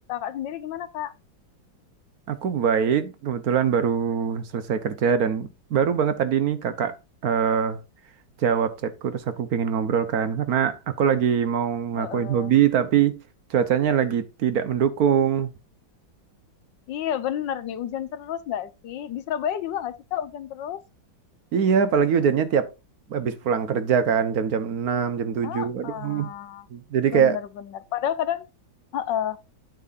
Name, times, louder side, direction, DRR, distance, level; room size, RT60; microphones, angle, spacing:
voice 1, 0.1-1.1 12.0-12.5 16.9-20.8 25.4-26.7 27.1-28.5 28.9-29.4, left 10 dB, 70° left, 1.4 m, -30 dB
voice 2, 2.3-7.0 7.2-7.8 8.4-13.2 13.5-15.5 21.5-22.7 23.1-26.3 26.7-27.4, right 7 dB, 55° right, 1.3 m, -23 dB
9.1 x 8.5 x 2.5 m
omnidirectional pair, 2.1 m